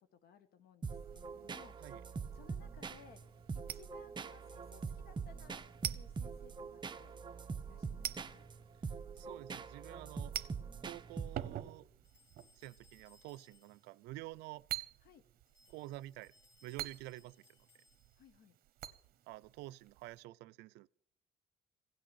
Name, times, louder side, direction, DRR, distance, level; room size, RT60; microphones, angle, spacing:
voice 1, 0.1-1.8 2.0-3.2 3.5-7.1 7.6-8.4 15.0-15.2 18.2-18.6, left 7 dB, 65° left, 1.6 m, -61 dB
sound 1, 0.8-11.7, right 5 dB, 25° right, 0.8 m, -44 dB
sound 2, 0.9-20.2, right 12 dB, 65° right, 0.9 m, -49 dB
voice 2, 9.2-10.3 10.8-11.9 12.6-14.6 15.7-16.3 16.6-17.4 19.3-20.9, right 17 dB, 90° right, 0.5 m, -49 dB
sound 3, 12.0-14.0 15.5-18.4, left 3 dB, 50° left, 3.4 m, -69 dB
16.5 x 6.4 x 9.9 m
cardioid pair, 110°, 17 cm